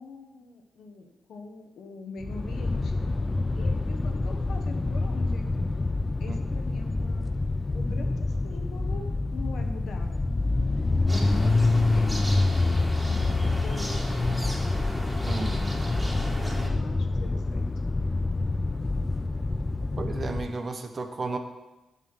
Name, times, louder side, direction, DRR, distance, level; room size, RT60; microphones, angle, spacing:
voice 1, 0.0-2.9 3.5-5.5 6.2-7.3 7.7-10.3 11.1-14.2 16.1-17.6, left 3 dB, 75° left, 4 dB, 1.2 m, -43 dB
sound 1, 2.2-20.6, left 2 dB, 30° left, 0.5 m, -27 dB
sound 2, 11.1-16.7, equal, 5° right, 2.5 m, -37 dB
voice 2, 15.3-15.7 20.0-21.4, right 3 dB, 45° right, 6 dB, 1.1 m, -33 dB
7.5 x 6.1 x 6.1 m, 1.0 s
supercardioid pair, 55°, 0 cm